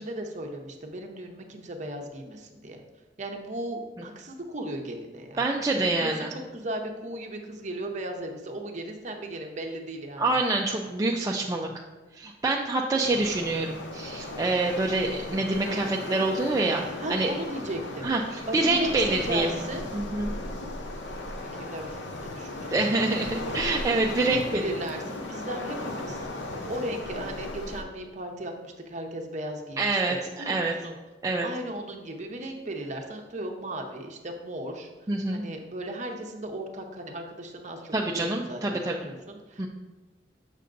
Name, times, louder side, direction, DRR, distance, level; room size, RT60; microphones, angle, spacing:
voice 1, 0.0-2.8 3.2-10.4 17.0-18.1 18.5-19.9 21.4-23.4 24.1-26.3 26.7-30.9 31.4-34.9 35.3-39.7, right 1 dB, 40° right, 3 dB, 0.7 m, -36 dB
voice 2, 5.4-6.3 10.2-11.7 12.1-17.3 18.0-19.6 19.9-20.3 22.7-24.6 29.8-30.2 30.5-30.8 31.2-31.5 35.1-35.4 37.9-38.9 39.6-39.7, right 2 dB, 20° right, 0 dB, 0.3 m, -26 dB
Waves surf, 13.0-27.8, left 2 dB, 85° left, 0.7 m, -36 dB
6.6 x 6.5 x 2.5 m, 1.2 s
head